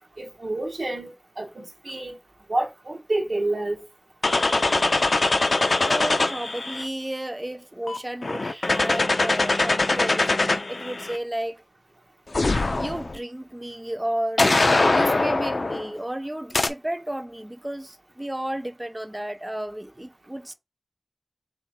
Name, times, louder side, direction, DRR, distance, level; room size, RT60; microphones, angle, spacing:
voice 1, 0.2-2.2 2.5-3.8, right 2 dB, 80° right, 1.2 m, -28 dB
sound 1, 4.2-6.9 7.9-11.2 12.3-13.2 14.4-15.9 16.5-16.7, left 2 dB, 85° left, 0.4 m, -22 dB
voice 2, 5.8-11.6 12.7-20.5, right 1 dB, 20° right, 0.4 m, -32 dB
3.5 x 3.0 x 4.2 m
wide cardioid pair, 55°, 0 cm